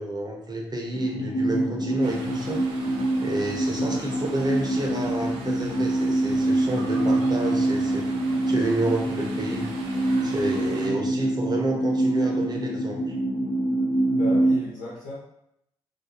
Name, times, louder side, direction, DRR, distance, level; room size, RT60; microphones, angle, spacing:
voice 1, 0.0-2.6 3.2-8.1 8.5-9.7 10.2-13.1, right 1 dB, 30° right, 0 dB, 0.7 m, -30 dB
sound 1, 0.9-14.6, right 1 dB, 30° left, 0.4 m, -25 dB
sound 2, 2.0-10.9, right 3 dB, 75° right, 0.4 m, -42 dB
voice 2, 14.1-15.1, left 2 dB, 75° left, -8 dB, 0.7 m, -35 dB
2.4 x 2.2 x 2.8 m, 0.75 s
hypercardioid pair, 45°, 14 cm